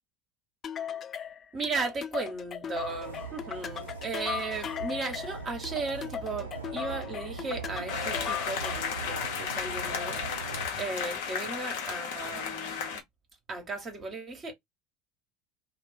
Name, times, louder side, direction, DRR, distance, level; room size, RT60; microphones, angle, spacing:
sound 1, 0.6-9.0, left 8 dB, 35° left, 0.3 m, -38 dB
voice 1, 1.5-10.2 10.8-13.0 13.5-14.5, right 3 dB, 30° right, 0.9 m, -36 dB
sound 2, 2.7-10.6, right 5 dB, 80° right, 0.5 m, -41 dB
sound 3, 7.9-13.0, left 6 dB, 65° left, 0.7 m, -34 dB
2.4 x 2.0 x 3.6 m
figure-of-eight pair, 70°, 0 cm